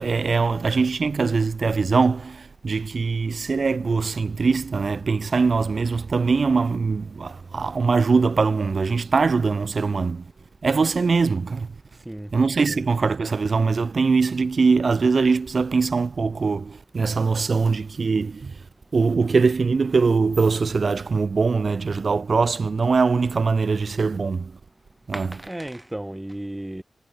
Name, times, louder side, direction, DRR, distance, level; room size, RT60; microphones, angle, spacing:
voice 1, 0.0-10.2 10.6-11.7 12.3-18.6 18.9-24.5 25.1-25.3, right 4 dB, 45° right, 2.7 m, -22 dB
voice 2, 25.1-26.8, right 1 dB, 10° right, 2.3 m, -34 dB
wide cardioid pair, 170°, 0 cm